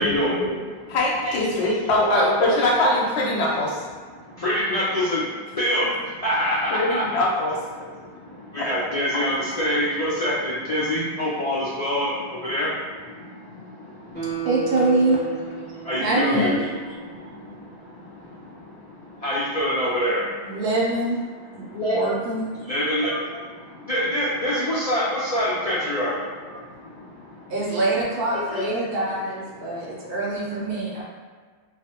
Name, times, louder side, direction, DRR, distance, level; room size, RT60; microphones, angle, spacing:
voice 1, 0.0-1.0 1.2-1.8 2.2-2.5 4.1-7.1 7.7-14.5 14.8-15.3 15.7-20.6 21.6-22.2 22.5-27.6 28.3-29.1 29.5-30.2 30.7-30.8, equal, 55° left, -9 dB, 0.4 m, -27 dB
voice 2, 0.9-3.8 6.7-7.6 8.6-8.7, left 1 dB, 85° left, -2 dB, 0.9 m, -22 dB
Guitar, 14.1-17.4 17.8-17.9, right 10 dB, 10° left, 0.7 m, -35 dB
voice 3, 14.4-15.2 16.0-16.6 20.4-21.2 21.5-22.5 27.5-31.0, right 2 dB, 65° right, -4 dB, 0.7 m, -24 dB
2.3 x 2.0 x 2.8 m, 1.5 s
omnidirectional pair, 1.1 m